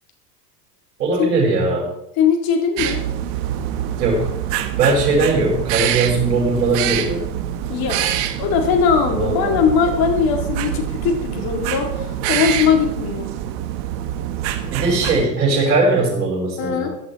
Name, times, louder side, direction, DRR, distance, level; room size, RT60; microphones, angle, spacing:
voice 1, 1.0-1.9 3.8-4.3 4.8-7.2 9.1-9.6 14.7-16.9, right 3 dB, 80° right, -3 dB, 6.1 m, -19 dB
voice 2, 2.2-3.0 7.7-13.3 16.6-16.9, left 6 dB, 50° left, 2 dB, 4.1 m, -20 dB
sound 1, 2.8-15.3, right 11 dB, 55° right, 1.6 m, -25 dB
17.5 x 11.0 x 4.5 m, 0.79 s
hypercardioid pair, 100°, 48 cm